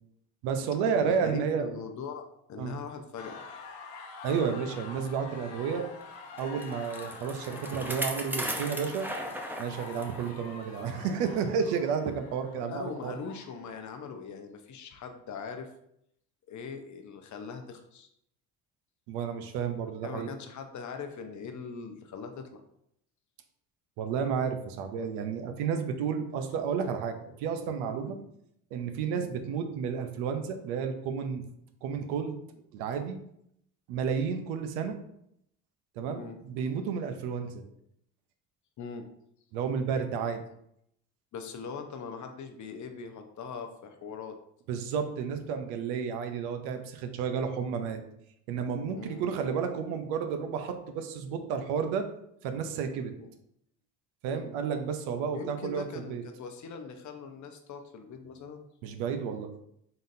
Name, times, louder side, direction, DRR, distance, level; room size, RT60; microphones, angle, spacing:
voice 1, 0.4-1.7 2.6-2.7 4.2-5.8 6.4-9.1 9.6-13.1 19.1-20.3 24.0-28.2 28.7-31.4 31.8-32.4 32.7-33.2 33.9-35.0 36.0-37.6 39.5-40.4 44.7-48.0 48.5-52.1 52.4-53.1 54.2-56.2 58.8-59.5, right 6 dB, 80° right, 7 dB, 0.7 m, -31 dB
voice 2, 1.0-3.5 12.6-15.7 16.5-18.1 20.0-22.6 28.0-28.3 29.1-29.3 36.1-36.4 38.8-39.1 41.3-44.4 48.9-49.2 53.2-53.3 54.3-54.5 55.3-58.6, left 5 dB, 45° left, 6 dB, 0.8 m, -41 dB
sound 1, 3.2-13.9, left 4 dB, 90° left, 0.7 m, -46 dB
Bicycle, 6.4-10.3 10.7-10.8 11.7-11.8, equal, 5° right, 0.7 m, -37 dB
3.9 x 3.8 x 2.6 m, 0.73 s
supercardioid pair, 75°, 40 cm